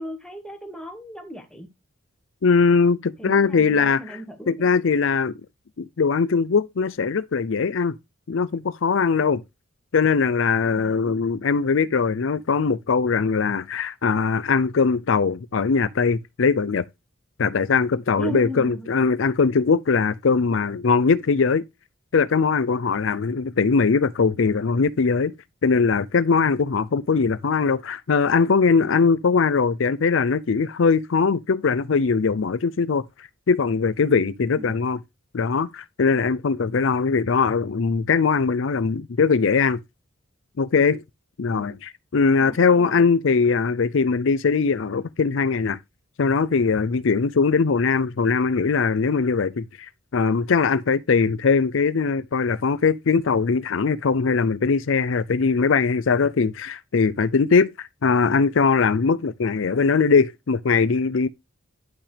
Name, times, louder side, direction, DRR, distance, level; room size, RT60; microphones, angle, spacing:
voice 1, 0.0-1.7 3.2-4.7 10.7-10.9 18.2-18.9 34.4-34.8 41.5-41.8 42.4-43.1, right 1 dB, 5° left, 1.9 m, -36 dB
voice 2, 2.4-4.2 4.5-5.4 5.8-7.9 8.3-9.4 9.9-16.8 17.4-21.6 22.1-25.3 25.6-35.0 35.3-39.8 40.6-41.0 41.4-45.8 46.2-61.3, left 5 dB, 70° left, 0.5 m, -21 dB
11.0 x 5.8 x 3.3 m
head